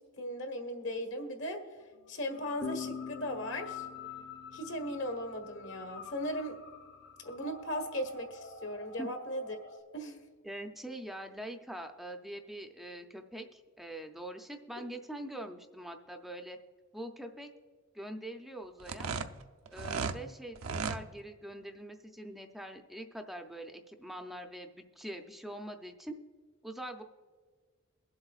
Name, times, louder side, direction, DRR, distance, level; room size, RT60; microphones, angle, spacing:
voice 1, 0.2-1.6 2.1-3.8 4.5-6.6 7.2-9.6 9.9-10.2, equal, 60° left, 5 dB, 1.4 m, -37 dB
sound 1, 2.3-9.8, left 5 dB, 80° left, 1.8 m, -48 dB
sound 2, 2.6-6.0, left 5 dB, 35° left, 0.9 m, -44 dB
voice 2, 10.4-16.6 16.9-17.5 17.9-19.1 19.7-26.2 26.6-27.0, right 1 dB, ahead, 4 dB, 0.5 m, -43 dB
sound 3, 18.8-20.2 20.6-21.0, right 5 dB, 80° right, 0.6 m, -35 dB
22.5 x 7.8 x 2.4 m, 1.5 s
head